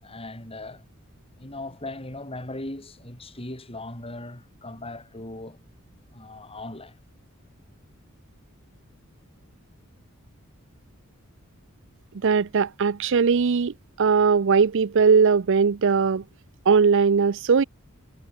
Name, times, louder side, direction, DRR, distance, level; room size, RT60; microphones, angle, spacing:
voice 1, 0.0-0.8 1.4-5.6 6.1-7.0, left 2 dB, 25° left, 5.9 m, -38 dB
voice 2, 12.2-16.2 16.7-17.6, right 5 dB, 60° right, 0.5 m, -20 dB
head